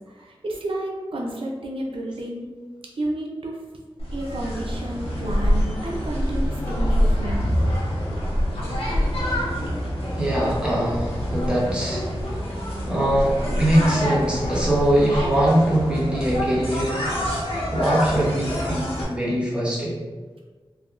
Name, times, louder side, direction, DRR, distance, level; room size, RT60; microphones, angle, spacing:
voice 1, 0.2-2.5 3.0-3.6 4.1-7.5, right 1 dB, 70° right, -1 dB, 0.5 m, -31 dB
sound 1, 4.0-19.0, equal, 90° left, 0.6 m, -26 dB
voice 2, 10.2-12.4 12.8-16.9 17.7-19.9, right 1 dB, 10° right, -7 dB, 1.0 m, -22 dB
3.3 x 2.2 x 2.4 m, 1.4 s
wide cardioid pair, 60°, 9 cm